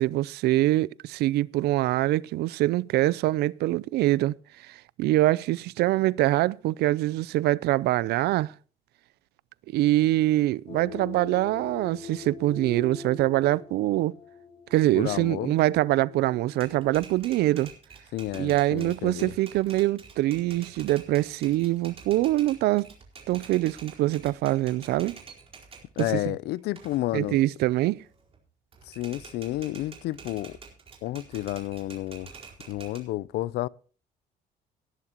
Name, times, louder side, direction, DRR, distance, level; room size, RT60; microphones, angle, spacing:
voice 1, 0.0-4.3 4.7-8.5 9.7-14.2 14.7-17.7 18.3-22.9 23.3-25.2 26.0-26.2 27.1-28.0, right 16 dB, 75° right, 0.4 m, -24 dB
sound 1, 10.7-17.2, left 6 dB, 40° left, 3.2 m, -43 dB
voice 2, 15.0-15.5 18.1-19.3 26.0-27.4 28.9-30.6 31.0-32.3 32.7-33.7, left 16 dB, 75° left, 0.5 m, -31 dB
Typewriter, 16.5-26.2 26.6-28.4 28.7-33.0, right 5 dB, 35° right, 4.5 m, -48 dB
19.0 x 11.0 x 3.0 m
cardioid pair, 110°, 17 cm